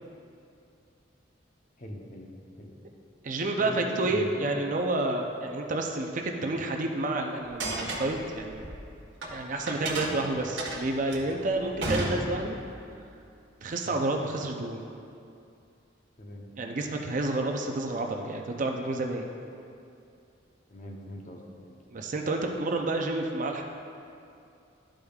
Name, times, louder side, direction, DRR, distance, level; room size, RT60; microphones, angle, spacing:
voice 1, 1.8-2.3 2.6-2.8 3.6-4.6 13.8-14.0 16.2-16.5 20.7-21.8, left 1 dB, 40° left, 0 dB, 0.8 m, -41 dB
voice 2, 3.2-8.7 9.3-12.6 13.6-14.8 16.6-19.3 21.9-23.6, right 2 dB, 40° right, 2 dB, 0.5 m, -29 dB
sound 1, 7.4-9.3 9.7-12.7, right 2 dB, 70° right, 1.2 m, -33 dB
12.5 x 5.0 x 2.4 m, 2.5 s
head